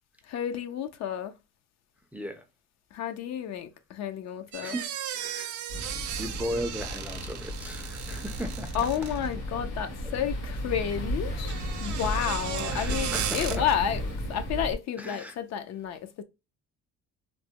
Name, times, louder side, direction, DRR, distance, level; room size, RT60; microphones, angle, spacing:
voice 1, 0.3-1.3 2.9-4.8 8.7-14.0 14.3-16.2, left 9 dB, 60° left, 0.5 m, -31 dB
voice 2, 2.1-2.4 4.6-4.9 5.1-5.5 6.2-9.1 12.6-13.7 15.0-15.4, equal, 5° right, 0.4 m, -36 dB
sound 1, 4.5-9.3 11.3-13.6, right 10 dB, 65° right, 0.5 m, -36 dB
sound 2, 5.7-14.7, equal, 75° left, 1.7 m, -34 dB
3.2 x 2.0 x 2.8 m
cardioid pair, 120°, 31 cm